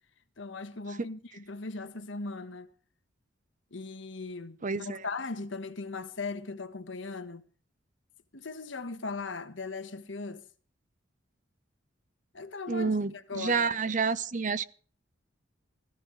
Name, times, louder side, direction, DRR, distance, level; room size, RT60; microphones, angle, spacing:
voice 1, 0.4-2.7 3.7-7.4 8.3-10.4 12.3-12.9 13.3-13.7, left 3 dB, 70° left, 1.4 m, -38 dB
voice 2, 4.6-5.1 12.7-14.6, right 4 dB, 40° right, 0.7 m, -29 dB
19.5 x 14.0 x 3.2 m
head